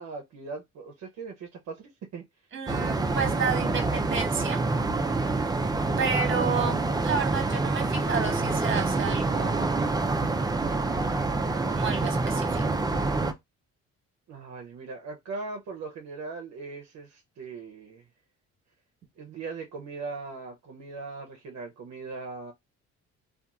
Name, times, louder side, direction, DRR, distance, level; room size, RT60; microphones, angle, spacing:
voice 1, 0.0-2.2 14.3-18.0 19.2-22.5, right 4 dB, 60° right, 0.7 m, -39 dB
voice 2, 2.5-4.6 6.0-9.7 11.7-12.9, right 5 dB, 40° right, 1.1 m, -31 dB
sound 1, 2.7-13.3, right 3 dB, 15° right, 0.4 m, -27 dB
2.8 x 2.4 x 2.3 m
cardioid pair, 90°, 30 cm